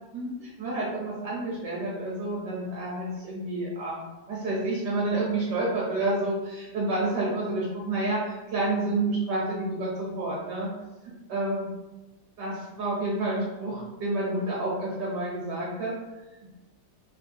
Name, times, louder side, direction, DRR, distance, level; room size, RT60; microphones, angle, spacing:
voice 1, 0.1-10.7 11.3-11.7 12.4-15.9, right 2 dB, 70° right, -5 dB, 1.2 m, -29 dB
3.3 x 2.0 x 2.5 m, 1.1 s
omnidirectional pair, 2.0 m